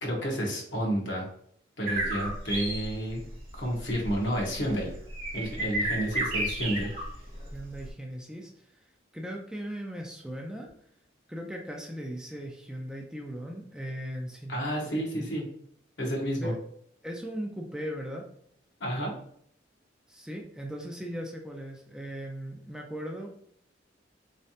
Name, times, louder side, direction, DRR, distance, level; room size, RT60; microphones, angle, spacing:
voice 1, 0.0-1.3 1.8-3.2 3.5-4.9 5.3-6.9 14.5-15.4 16.0-16.5 18.8-19.1, equal, 75° left, 0 dB, 1.1 m, -30 dB
sound 1, 1.9-7.9, right 1 dB, 30° right, 1.3 m, -32 dB
voice 2, 6.1-6.7 7.5-10.7 11.3-15.3 16.4-16.6 17.0-18.3 20.1-23.3, equal, 5° right, 0 dB, 0.4 m, -38 dB
3.7 x 3.2 x 2.8 m, 0.65 s
head